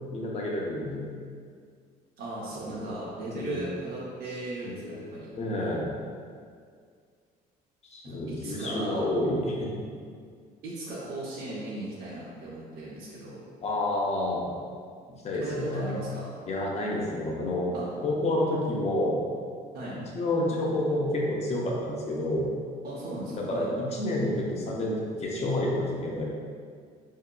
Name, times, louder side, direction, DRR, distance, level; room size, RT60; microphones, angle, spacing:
voice 1, 0.1-1.1 2.8-3.6 4.6-5.0 5.3-5.9 7.9-9.9 13.6-14.5 15.2-15.9 16.5-17.7 18.0-19.2 20.1-22.5 23.3-26.2, left 1 dB, 40° left, -2 dB, 0.7 m, -29 dB
voice 2, 2.2-5.3 8.0-9.1 10.6-13.5 15.4-16.3 17.7-17.9 19.7-20.0 22.8-23.7, right 2 dB, 65° right, -7 dB, 0.7 m, -37 dB
4.6 x 2.7 x 2.2 m, 2.1 s
cardioid pair, 110°, 17 cm